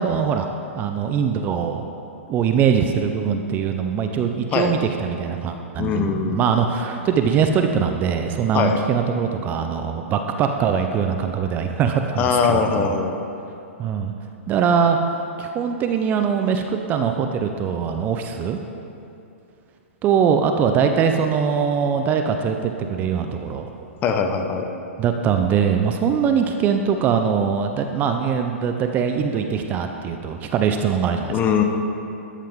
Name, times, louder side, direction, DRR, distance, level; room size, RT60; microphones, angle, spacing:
voice 1, 0.0-1.8 2.3-12.9 13.8-14.1 14.5-18.6 20.0-23.7 25.0-31.3, right 7 dB, 25° right, 5 dB, 0.5 m, -22 dB
voice 2, 5.8-6.4 8.5-8.8 12.2-13.2 24.0-24.7 31.3-31.6, left 6 dB, 25° left, 5 dB, 0.8 m, -21 dB
13.0 x 7.4 x 3.6 m, 2.7 s
hypercardioid pair, 140°, 7 cm